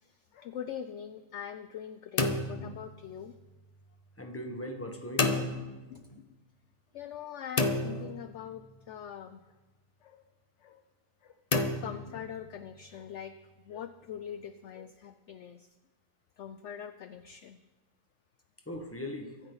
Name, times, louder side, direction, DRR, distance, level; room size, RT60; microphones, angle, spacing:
voice 1, 0.0-3.4 5.9-6.3 6.9-9.4 10.0-10.2 10.6-10.8 11.2-11.3 11.8-13.3 13.6-15.7 16.4-17.6, left 9 dB, 65° left, 10 dB, 0.7 m, -43 dB
sound 1, 2.2-3.5 5.2-6.2 7.6-8.8 11.5-12.7, left 2 dB, 30° left, 0.8 m, -31 dB
voice 2, 4.2-5.5 18.7-19.3, left 1 dB, 10° left, 3 dB, 1.4 m, -39 dB
23.5 x 9.9 x 4.0 m, 1.2 s
omnidirectional pair, 1.7 m